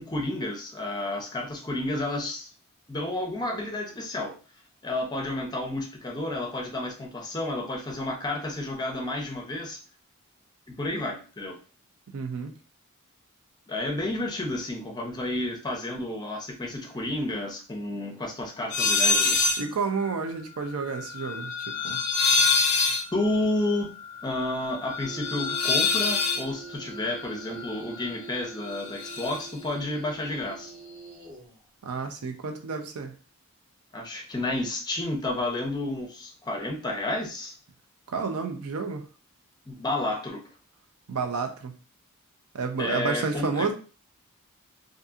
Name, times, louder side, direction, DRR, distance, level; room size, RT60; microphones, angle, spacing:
voice 1, 0.0-2.5 2.9-4.4 4.8-9.8 10.7-11.6 13.7-19.4 23.1-23.9 24.2-30.7 33.9-37.5 39.7-40.4 42.8-43.7, left 2 dB, 20° left, 1 dB, 0.5 m, -31 dB
voice 2, 12.1-12.6 19.6-22.0 31.8-33.1 38.1-39.1 41.1-41.7 42.5-43.7, right 5 dB, 80° right, 5 dB, 0.5 m, -30 dB
sound 1, 18.7-19.7 20.0-28.2 28.4-29.5, left 4 dB, 70° left, 0.4 m, -27 dB
sound 2, 25.0-31.5, right 5 dB, 25° right, 0.8 m, -44 dB
2.7 x 2.6 x 2.3 m, 0.37 s
head